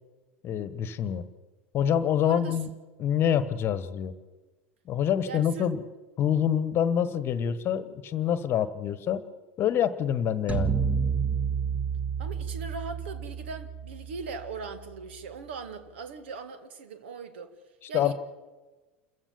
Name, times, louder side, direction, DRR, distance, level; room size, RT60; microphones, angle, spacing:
voice 1, 0.4-1.2 1.7-2.7 3.0-4.1 4.9-5.8 6.2-9.2 9.6-10.8 17.9-18.1, left 9 dB, 35° left, 15 dB, 1.3 m, -26 dB
voice 2, 2.2-2.6 5.2-5.7 12.2-17.5 17.9-18.1, right 4 dB, 65° right, 10 dB, 2.0 m, -39 dB
sound 1, 10.5-14.8, right 6 dB, 20° right, 1.6 m, -30 dB
28.0 x 15.0 x 7.2 m, 1.3 s
figure-of-eight pair, 80°, 7 cm